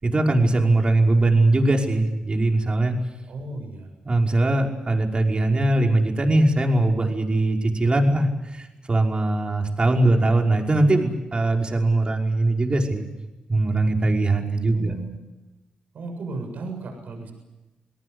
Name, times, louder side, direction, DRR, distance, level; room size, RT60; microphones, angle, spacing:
voice 1, 0.0-2.9 4.1-13.1 13.5-14.9, right 2 dB, 40° right, 1 dB, 5.4 m, -21 dB
voice 2, 3.3-3.9 10.0-10.2 14.7-15.2 15.9-17.3, right 2 dB, 75° right, 4 dB, 7.3 m, -35 dB
29.0 x 18.5 x 8.1 m, 1.0 s
cardioid pair, 55°, 3 cm